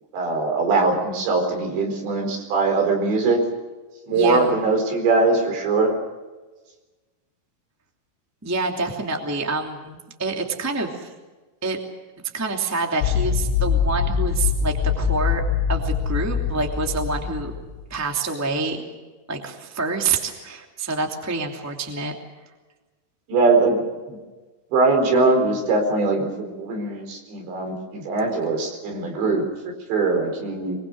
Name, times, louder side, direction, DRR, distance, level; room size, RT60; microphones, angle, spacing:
voice 1, 0.1-3.4 4.1-5.9 23.3-24.2 24.7-30.8, right 3 dB, 65° right, 3 dB, 6.6 m, -21 dB
voice 2, 4.1-4.5 8.4-11.1 11.6-11.8 12.3-15.4 15.7-17.5 17.9-18.8 19.3-22.1, right 3 dB, 5° right, 2 dB, 1.4 m, -27 dB
sound 1, 13.0-17.8, left 7 dB, 80° left, 3.4 m, -23 dB
24.0 x 23.0 x 6.5 m, 1.2 s
omnidirectional pair, 5.5 m